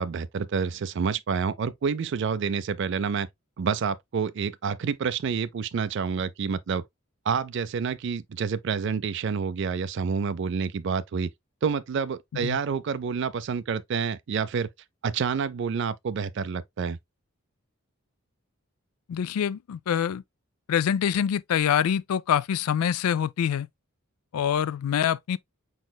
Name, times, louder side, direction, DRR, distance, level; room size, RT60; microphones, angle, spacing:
voice 1, 0.0-3.3 3.6-6.8 7.3-11.3 11.6-14.7 15.0-17.0, right 6 dB, 55° right, 0.4 m, -28 dB
voice 2, 19.1-20.2 20.7-23.7 24.3-25.4, left 8 dB, 90° left, 0.3 m, -25 dB
5.0 x 4.1 x 2.2 m
head